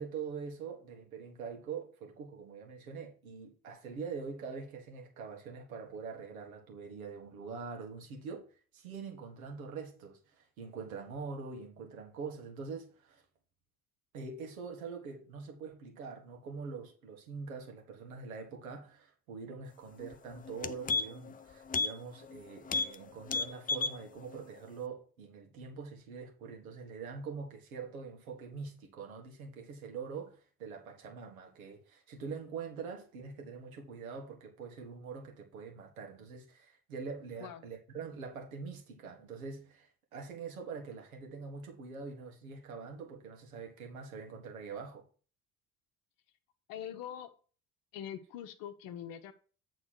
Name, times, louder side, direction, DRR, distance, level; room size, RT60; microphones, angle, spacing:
voice 1, 0.0-13.2 14.1-45.1, right 5 dB, 80° right, 1.8 m, -44 dB
sound 1, 20.0-20.1 20.5-21.3 21.7-21.9 22.2-22.4 22.7-23.0 23.2-24.0 24.4-24.5, left 4 dB, 20° left, 0.5 m, -32 dB
voice 2, 46.7-47.3 47.9-49.3, left 9 dB, 55° left, 1.0 m, -43 dB
8.5 x 3.8 x 6.4 m
figure-of-eight pair, 55°, 42 cm